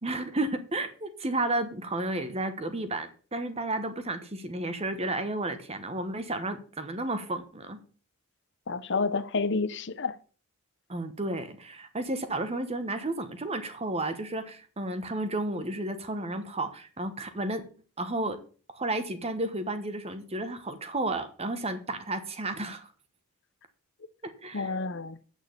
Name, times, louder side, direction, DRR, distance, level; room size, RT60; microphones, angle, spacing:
voice 1, 0.0-7.8 10.9-17.6 18.0-18.4 18.7-22.9 24.2-24.7, right 2 dB, 25° right, 1.1 m, -32 dB
voice 2, 8.7-10.1 24.5-25.2, left 4 dB, 55° left, 0.8 m, -29 dB
9.1 x 6.4 x 6.8 m
head